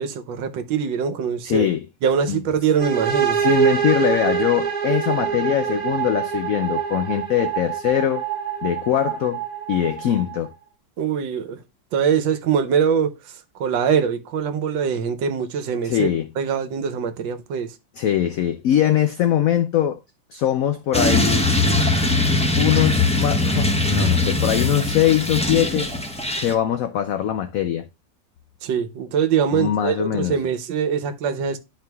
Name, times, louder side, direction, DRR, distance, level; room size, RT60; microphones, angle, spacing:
voice 1, 0.0-1.7 2.0-3.4 11.0-11.6 11.9-16.1 16.4-17.8 28.6-31.6, right 7 dB, 75° right, 1.5 m, -23 dB
voice 2, 1.4-1.8 2.3-2.4 3.4-8.2 8.6-9.4 9.7-10.5 15.8-16.3 18.0-20.0 20.3-21.5 22.6-25.9 26.4-27.9 29.5-30.4, left 11 dB, 85° left, 0.7 m, -22 dB
sound 1, 2.8-10.5, right 8 dB, 30° right, 0.8 m, -25 dB
sound 2, 20.9-26.5, left 2 dB, 5° left, 0.5 m, -21 dB
11.0 x 4.7 x 2.2 m
omnidirectional pair, 2.1 m